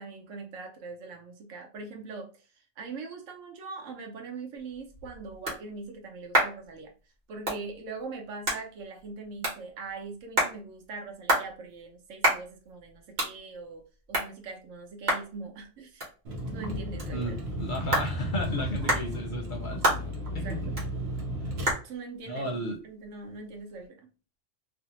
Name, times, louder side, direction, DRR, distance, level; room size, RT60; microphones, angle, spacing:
voice 1, 0.0-6.9 7.3-16.1 16.5-17.3 20.3-20.8 21.8-24.1, right 4 dB, 90° right, 1.1 m, -42 dB
sound 1, 4.6-23.9, right 1 dB, 40° right, 1.1 m, -33 dB
Vehicle, 16.3-21.7, equal, 65° right, 1.0 m, -34 dB
voice 2, 17.1-20.7 21.4-21.5 22.3-22.8, equal, 55° left, 0.6 m, -34 dB
2.6 x 2.1 x 2.9 m
omnidirectional pair, 1.3 m